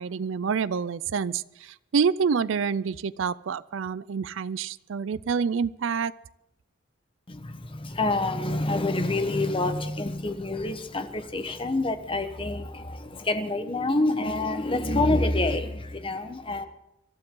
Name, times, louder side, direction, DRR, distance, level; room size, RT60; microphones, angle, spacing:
voice 1, 0.0-6.1, right 6 dB, 75° right, 17 dB, 0.4 m, -27 dB
voice 2, 7.3-16.7, left 2 dB, 25° left, 9 dB, 1.1 m, -27 dB
26.5 x 12.5 x 3.8 m, 0.88 s
head